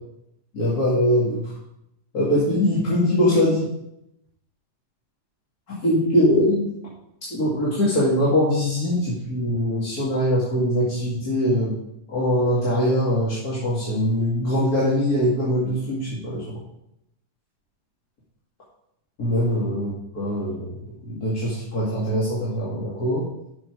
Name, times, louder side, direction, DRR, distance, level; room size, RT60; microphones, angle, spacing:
voice 1, 0.5-1.4 2.1-3.7 5.8-6.7 7.3-11.7 12.1-16.6 19.2-20.7 21.1-23.2, equal, 30° left, -8 dB, 2.4 m, -22 dB
11.0 x 6.2 x 4.7 m, 0.80 s
omnidirectional pair, 3.8 m